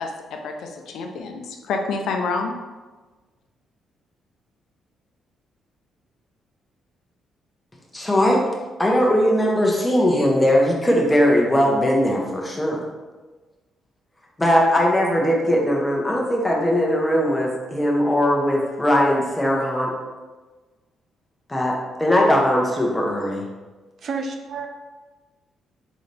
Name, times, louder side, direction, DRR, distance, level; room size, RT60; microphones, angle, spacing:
voice 1, 0.0-2.5, left 4 dB, 75° left, 3 dB, 0.6 m, -28 dB
voice 2, 7.9-8.4 8.8-12.8 14.4-19.9 21.5-23.4, equal, 15° left, -1 dB, 1.0 m, -19 dB
voice 3, 24.0-24.7, right 4 dB, 60° right, 4 dB, 0.6 m, -30 dB
4.0 x 3.9 x 3.4 m, 1.3 s
cardioid pair, 90°, 0 cm